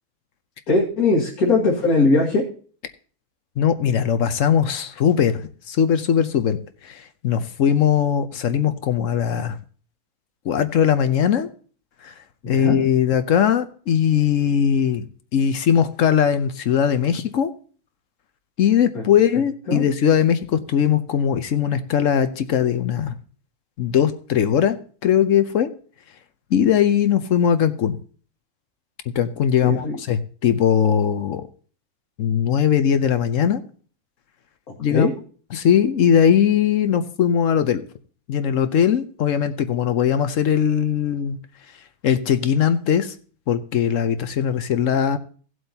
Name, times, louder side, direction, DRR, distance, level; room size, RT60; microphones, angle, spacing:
voice 1, 0.7-2.5 12.4-12.8 18.9-19.0 19.7-19.8 29.6-30.0 34.9-35.1, left 3 dB, 90° left, -3 dB, 2.3 m, -20 dB
voice 2, 3.6-6.6 6.8-9.6 10.4-11.5 12.0-12.1 12.5-15.0 15.3-17.5 18.6-23.1 23.8-24.8 25.0-25.7 26.5-28.0 29.1-31.5 32.2-33.6 34.8-35.1 35.5-37.8 38.3-41.4 42.0-43.1 43.5-45.2, left 8 dB, 65° left, 10 dB, 1.1 m, -20 dB
17.0 x 7.8 x 2.8 m, 0.41 s
omnidirectional pair, 1.5 m